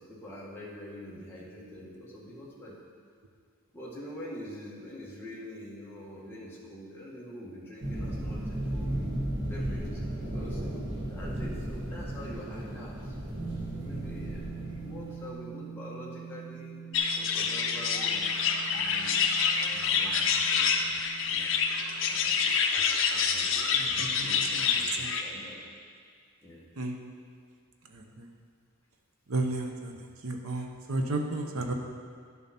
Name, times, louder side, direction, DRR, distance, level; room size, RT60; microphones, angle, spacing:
voice 1, 0.0-2.7 3.7-9.0 9.4-10.8 11.1-13.1 13.7-16.7 17.2-19.1 19.7-20.9 21.2-21.5 22.1-22.6 23.1-25.6 26.4-26.6, equal, 10° left, -7 dB, 1.6 m, -45 dB
sound 1, 7.8-15.3, right 1 dB, 55° right, 1.8 m, -35 dB
sound 2, 13.4-22.4, right 7 dB, 25° right, 0.4 m, -45 dB
sound 3, 16.9-25.2, left 6 dB, 60° left, 0.7 m, -27 dB
voice 2, 23.7-24.7 25.0-25.1 26.8-27.0 27.9-28.3 29.3-31.7, right 2 dB, 80° right, 2 dB, 0.9 m, -33 dB
10.5 x 7.0 x 4.3 m, 2.1 s
head